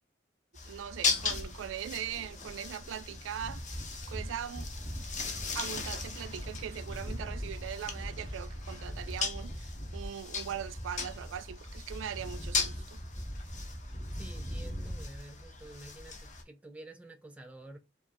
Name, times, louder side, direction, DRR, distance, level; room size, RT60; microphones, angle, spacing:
sound 1, 0.5-16.4, left 4 dB, 40° left, 0.7 m, -38 dB
voice 1, 0.6-3.6 4.1-4.7 5.5-13.0, right 9 dB, 85° right, 0.3 m, -40 dB
sound 2, 2.1-15.2, equal, 20° left, 1.2 m, -42 dB
voice 2, 14.2-17.8, right 1 dB, 5° right, 0.5 m, -50 dB
5.0 x 2.4 x 2.8 m
head